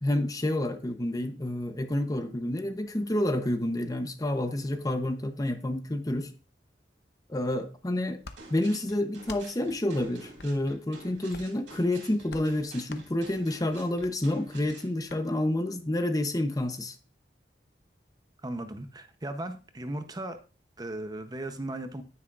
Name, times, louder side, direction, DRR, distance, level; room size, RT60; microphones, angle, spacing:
voice 1, 0.0-6.3 7.3-8.2 8.5-17.0, left 1 dB, 20° left, 8 dB, 0.7 m, -29 dB
sound 1, 8.2-8.4 9.2-9.5 10.4-10.5 11.3-11.6 12.3-12.5 12.9-13.1 14.0-14.1 15.1-15.2, left 3 dB, 65° left, 0.8 m, -44 dB
sound 2, 8.4-14.9, right 3 dB, 85° right, 2.2 m, -50 dB
voice 2, 18.4-20.4 20.8-22.0, right 1 dB, 20° right, 8 dB, 0.7 m, -36 dB
10.0 x 9.6 x 2.4 m, 0.35 s
head